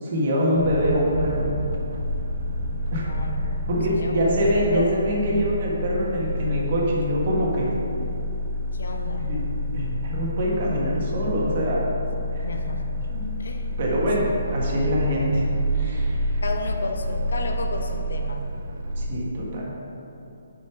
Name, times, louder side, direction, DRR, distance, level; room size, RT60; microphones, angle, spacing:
voice 1, 0.0-1.5 2.9-3.2 3.7-7.7 9.2-11.9 12.3-12.5 13.1-13.3 13.8-15.5 15.7-16.4 19.0-19.7, equal, 40° right, -4 dB, 1.4 m, -24 dB
sound 1, 0.6-19.0, equal, 55° right, 0.8 m, -28 dB
voice 2, 3.0-5.0 8.7-9.3 12.3-13.0 13.4-13.8 16.4-18.5, left 3 dB, 75° left, 4 dB, 0.7 m, -33 dB
6.6 x 5.3 x 4.7 m, 2.8 s
hypercardioid pair, 170°, 0 cm